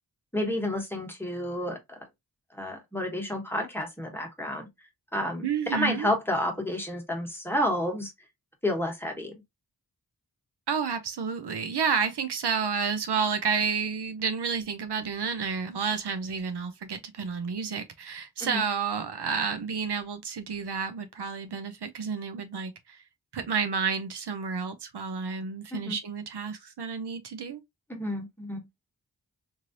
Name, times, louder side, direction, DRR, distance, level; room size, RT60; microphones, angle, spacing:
voice 1, 0.3-1.8 2.5-4.7 5.1-8.1 8.6-9.4 18.4-18.6 25.7-26.0 27.9-28.6, left 1 dB, 5° left, 1.2 m, -30 dB
voice 2, 5.4-6.1 10.7-23.0 23.3-27.6, right 6 dB, 75° right, 0.6 m, -30 dB
3.1 x 2.7 x 2.5 m
wide cardioid pair, 50°, 40 cm